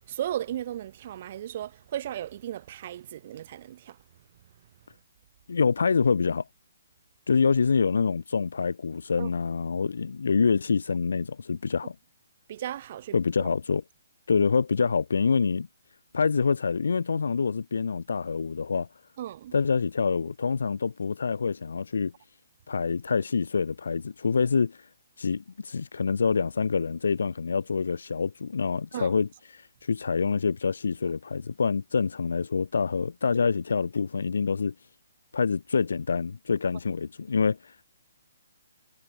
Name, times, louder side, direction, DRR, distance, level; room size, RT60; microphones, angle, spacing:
voice 1, 0.1-4.0 9.2-9.3 12.5-13.1 19.2-19.5 28.9-29.1, right 11 dB, 40° right, 2.1 m, -35 dB
voice 2, 5.5-6.5 7.3-11.9 13.1-13.8 14.3-15.7 16.1-18.9 19.5-22.1 22.7-24.9 25.2-34.7 35.3-37.9, left 5 dB, 80° left, 2.9 m, -26 dB
hypercardioid pair, 165°, 0 cm